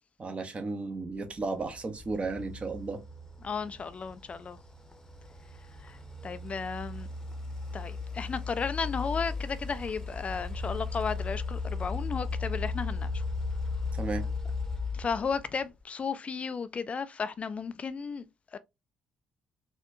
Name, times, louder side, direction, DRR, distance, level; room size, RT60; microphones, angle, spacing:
voice 1, 0.2-3.0 13.9-14.2, right 3 dB, 35° right, 0.9 m, -34 dB
sound 1, 1.4-15.8, left 4 dB, 15° left, 0.8 m, -36 dB
voice 2, 3.4-4.6 5.8-6.0 6.2-7.1 7.7-13.2 14.9-18.3 18.5-18.6, left 5 dB, 35° left, 0.3 m, -34 dB
4.1 x 2.5 x 2.6 m
hypercardioid pair, 50°, 4 cm